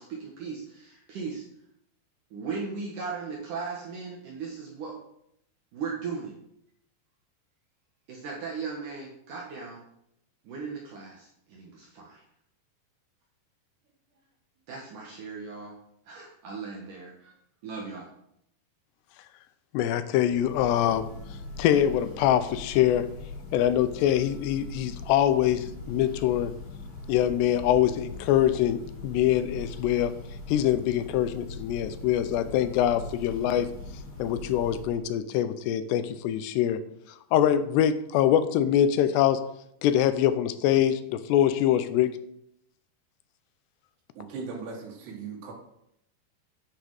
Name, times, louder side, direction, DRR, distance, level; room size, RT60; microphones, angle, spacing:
voice 1, 0.0-1.4 2.3-5.0 5.7-6.3 8.1-9.8 10.4-12.2 14.7-15.7 16.1-17.3 17.6-18.1, right 5 dB, 60° right, -2 dB, 2.6 m, -37 dB
voice 2, 19.7-21.1 21.6-23.1 23.5-26.5 27.1-30.1 30.5-33.7 34.2-36.8 37.3-39.4 39.8-42.1, left 11 dB, 90° left, 12 dB, 2.9 m, -24 dB
Church bell, 20.2-35.1, left 3 dB, 70° left, 5.6 m, -41 dB
voice 3, 44.2-45.5, right 5 dB, 80° right, -3 dB, 4.0 m, -38 dB
10.0 x 9.0 x 4.8 m, 0.76 s
omnidirectional pair, 4.7 m